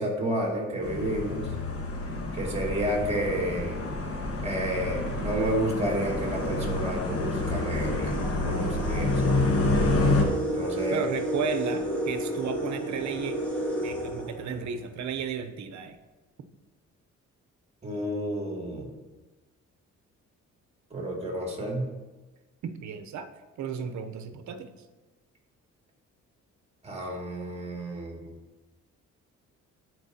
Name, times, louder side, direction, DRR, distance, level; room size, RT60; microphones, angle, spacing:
voice 1, 0.0-1.5 2.3-3.8 4.4-8.2 8.4-9.4 10.5-11.0 17.8-18.9 20.9-21.9 26.8-28.3, right 1 dB, 20° right, 0 dB, 2.2 m, -31 dB
sound 1, 0.8-10.2, left 2 dB, 50° left, 1.4 m, -28 dB
sound 2, 5.3-15.0, right 1 dB, 5° left, 2.2 m, -32 dB
voice 2, 10.9-13.4 13.8-16.0 22.6-23.3 23.6-24.7, right 6 dB, 65° right, 8 dB, 0.8 m, -33 dB
14.0 x 4.6 x 2.8 m, 1.2 s
cardioid pair, 90°, 30 cm